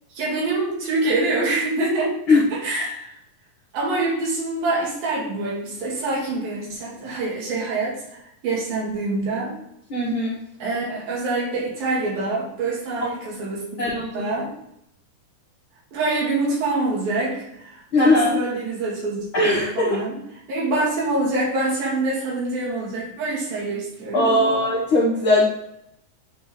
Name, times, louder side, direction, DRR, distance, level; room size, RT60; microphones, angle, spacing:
voice 1, 0.1-2.2 2.5-3.1 3.7-9.5 10.6-14.5 15.9-20.2 20.5-24.6, right 2 dB, 80° right, -5 dB, 4.0 m, -26 dB
voice 2, 9.9-10.4 13.8-14.2 17.9-18.4 19.3-20.0 24.1-25.4, left 2 dB, 65° left, -6 dB, 1.2 m, -19 dB
10.0 x 3.8 x 3.3 m, 0.78 s
omnidirectional pair, 4.1 m